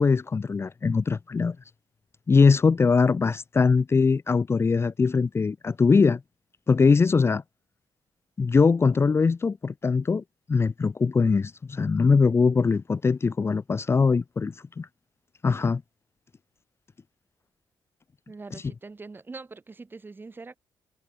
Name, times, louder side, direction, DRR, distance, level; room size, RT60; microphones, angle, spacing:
voice 1, 0.0-1.6 2.3-6.2 6.7-7.4 8.4-10.2 10.5-14.9 15.4-15.8, left 4 dB, 30° left, 1.0 m, -22 dB
voice 2, 18.3-20.6, right 3 dB, 25° right, 4.3 m, -43 dB
cardioid pair, 140°, 9 cm